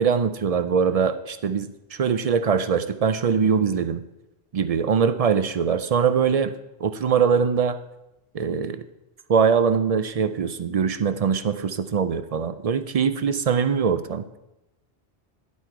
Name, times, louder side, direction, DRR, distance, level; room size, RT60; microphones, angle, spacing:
voice 1, 0.0-4.0 4.5-6.5 6.8-7.8 8.3-8.8 9.3-14.2, right 6 dB, 50° right, 11 dB, 0.4 m, -22 dB
10.5 x 8.3 x 4.6 m, 0.93 s
omnidirectional pair, 1.1 m